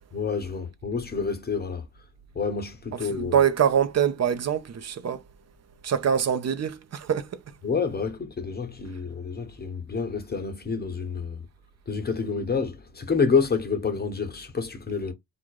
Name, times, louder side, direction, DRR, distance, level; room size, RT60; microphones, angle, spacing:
voice 1, 0.1-1.9 2.3-3.4 7.6-11.4 11.9-15.1, left 5 dB, 30° left, 1.1 m, -28 dB
voice 2, 3.1-5.2 5.8-7.3, right 8 dB, 50° right, 0.8 m, -24 dB
3.8 x 2.5 x 4.6 m
cardioid pair, 105°, 33 cm